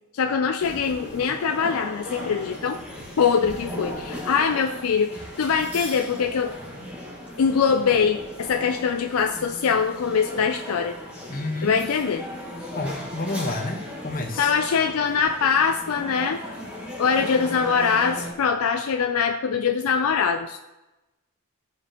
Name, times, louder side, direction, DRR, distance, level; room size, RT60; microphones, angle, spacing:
voice 1, 0.1-2.8 3.2-6.5 7.4-10.9 11.6-12.3 14.4-16.4 17.0-20.6, left 6 dB, 70° left, 5 dB, 0.4 m, -23 dB
sound 1, 0.6-18.3, left 1 dB, 5° right, 1.5 m, -37 dB
voice 2, 11.3-11.8 12.7-14.5, left 2 dB, 40° left, 2 dB, 1.1 m, -30 dB
14.5 x 5.0 x 2.9 m, 1.0 s
head